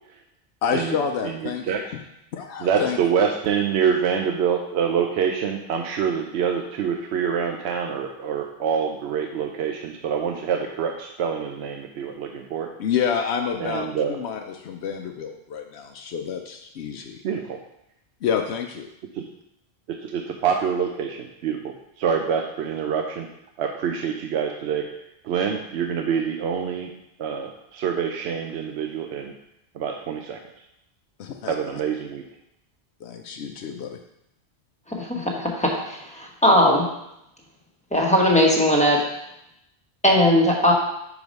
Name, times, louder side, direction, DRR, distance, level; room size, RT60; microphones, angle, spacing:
voice 1, 0.6-1.9 2.3-3.0 12.8-17.2 18.2-18.9 31.2-31.8 33.0-34.0, left 7 dB, 85° left, 4 dB, 0.9 m, -28 dB
voice 2, 1.2-1.8 2.6-12.7 13.6-14.2 17.2-17.6 19.1-19.2 20.0-23.3 23.6-24.8 25.2-26.9 27.2-29.3 29.7-30.4 31.5-32.2, right 7 dB, 80° right, 3 dB, 0.8 m, -26 dB
voice 3, 35.0-36.8 37.9-39.0 40.0-40.7, left 1 dB, 5° left, -2 dB, 1.1 m, -19 dB
5.1 x 4.8 x 5.2 m, 0.82 s
omnidirectional pair, 1.1 m